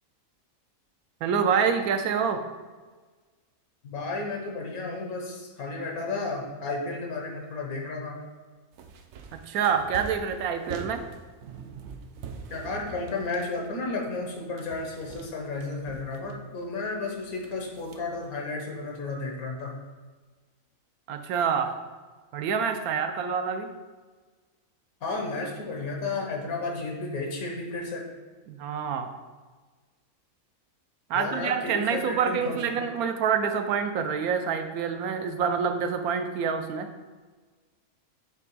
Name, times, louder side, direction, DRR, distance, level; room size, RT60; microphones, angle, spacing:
voice 1, 1.2-2.4 9.3-11.0 21.1-21.7 22.3-23.7 28.5-29.1 31.1-36.9, right 6 dB, 90° right, 7 dB, 1.1 m, -27 dB
voice 2, 3.8-8.2 12.5-19.7 25.0-28.1 31.1-32.8, left 3 dB, 90° left, 0 dB, 1.6 m, -33 dB
sound 1, 8.7-14.3 14.6-16.7 17.1-18.4, right 5 dB, 65° right, 0.7 m, -44 dB
7.5 x 3.3 x 4.6 m, 1.4 s
omnidirectional pair, 1.5 m